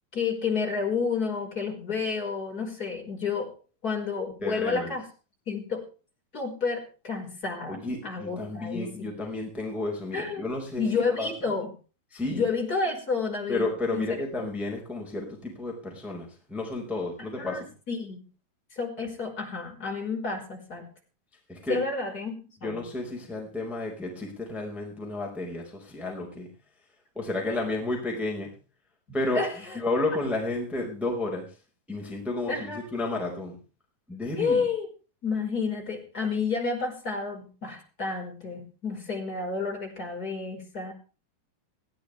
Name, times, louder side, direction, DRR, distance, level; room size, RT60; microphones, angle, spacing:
voice 1, 0.1-3.5 3.8-5.1 5.5-5.8 6.3-9.1 10.1-10.5 10.8-11.7 12.3-13.7 13.9-14.1 17.4-18.2 18.7-20.9 21.7-22.8 27.4-27.7 29.3-29.8 32.5-32.8 34.4-34.9 35.2-40.9, left 4 dB, 20° left, 1 dB, 5.5 m, -30 dB
voice 2, 4.4-4.9 7.7-11.3 12.1-12.5 13.5-17.7 21.5-21.8 22.6-26.5 27.1-28.5 29.1-29.4 29.7-31.5 31.9-33.6 34.1-34.7, left 2 dB, ahead, 0 dB, 4.5 m, -32 dB
20.5 x 16.0 x 3.4 m, 0.35 s
omnidirectional pair, 4.5 m